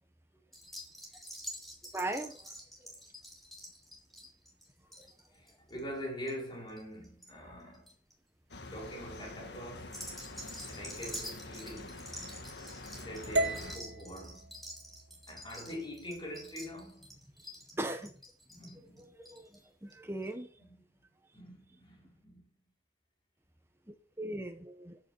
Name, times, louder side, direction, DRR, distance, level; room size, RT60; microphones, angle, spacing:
sound 1, 0.5-7.3 7.6-8.1 8.6-9.0 9.8-19.6 19.9-20.0 20.2-20.3, equal, ahead, 3.3 m, -48 dB
voice 1, 1.9-2.4 2.8-2.9 5.0-5.1 17.7-18.1 18.5-18.7 19.0-20.5 23.9-25.0, right 1 dB, 15° right, 1.3 m, -39 dB
voice 2, 5.0-7.9 8.7-10.0 10.7-12.1 13.0-14.5 15.3-17.1 18.6-19.1 20.7-20.8 21.3-22.5, equal, 25° left, 4.5 m, -44 dB
sound 2, 8.5-13.8, left 2 dB, 70° left, 1.7 m, -46 dB
sound 3, 13.4-17.5, right 1 dB, 75° right, 1.0 m, -38 dB
13.5 x 6.6 x 4.8 m
head